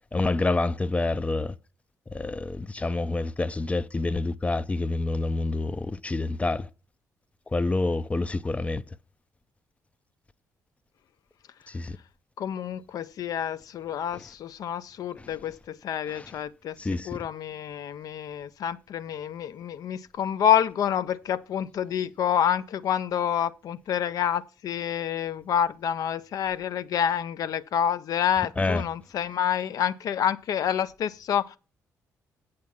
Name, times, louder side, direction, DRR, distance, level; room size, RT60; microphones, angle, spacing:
voice 1, 0.1-1.5 2.1-6.7 7.5-8.8 11.7-12.0 14.1-14.2 15.2-15.3 16.1-16.3 16.8-17.2 28.6-28.8, left 2 dB, 20° left, 0.6 m, -27 dB
voice 2, 12.4-16.8 17.0-31.6, left 9 dB, 70° left, 0.7 m, -28 dB
8.4 x 6.7 x 5.7 m
cardioid pair, 75°, 7 cm